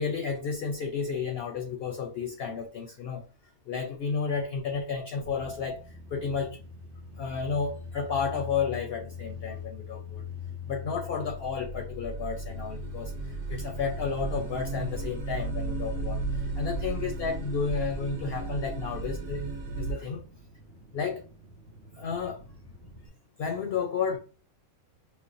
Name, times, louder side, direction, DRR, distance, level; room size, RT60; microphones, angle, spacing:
voice 1, 0.0-3.2 3.7-6.6 7.2-10.2 10.7-13.1 13.5-16.2 16.6-19.4 19.8-20.2 20.9-21.2 21.9-22.4 23.4-24.2, left 5 dB, 65° left, 0.6 m, -32 dB
sound 1, 5.2-23.1, left 5 dB, 60° right, 1.0 m, -44 dB
sound 2, 11.4-19.9, right 3 dB, 80° right, 1.3 m, -34 dB
5.3 x 2.1 x 2.5 m
omnidirectional pair, 1.5 m